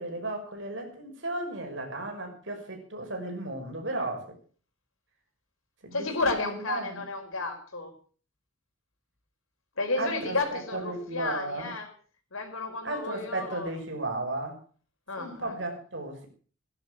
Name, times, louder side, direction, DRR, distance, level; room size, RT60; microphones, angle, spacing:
voice 1, 0.0-4.3 5.8-7.0 10.0-11.7 12.8-14.6 15.2-16.3, right 2 dB, 60° right, 3 dB, 5.7 m, -35 dB
voice 2, 5.9-7.9 9.8-11.9 12.3-13.7 15.1-15.5, left 3 dB, 85° left, 5 dB, 4.9 m, -32 dB
17.5 x 11.5 x 6.5 m, 0.42 s
head